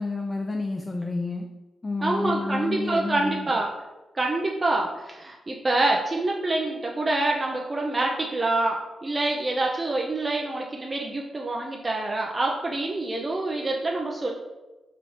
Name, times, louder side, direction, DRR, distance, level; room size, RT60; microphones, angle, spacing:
voice 1, 0.0-1.5 1.8-3.5, left 3 dB, 30° left, 2 dB, 0.4 m, -30 dB
voice 2, 2.0-3.7 4.1-14.3, right 2 dB, 35° right, -1 dB, 0.5 m, -26 dB
4.2 x 3.1 x 2.8 m, 1.1 s
cardioid pair, 55°, 0 cm